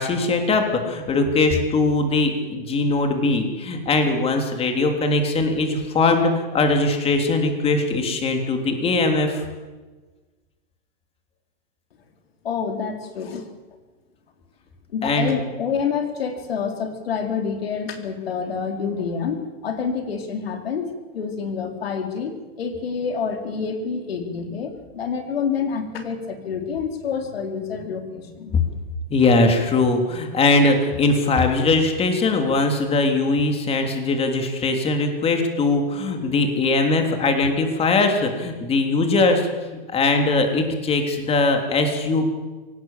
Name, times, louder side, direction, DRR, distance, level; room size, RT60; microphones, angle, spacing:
voice 1, 0.0-9.5 15.0-15.3 29.1-42.3, left 3 dB, 20° left, 5 dB, 3.5 m, -21 dB
voice 2, 12.4-13.4 14.9-28.5, left 6 dB, 80° left, 5 dB, 4.2 m, -27 dB
24.0 x 18.0 x 7.6 m, 1.3 s
hypercardioid pair, 135°, 30 cm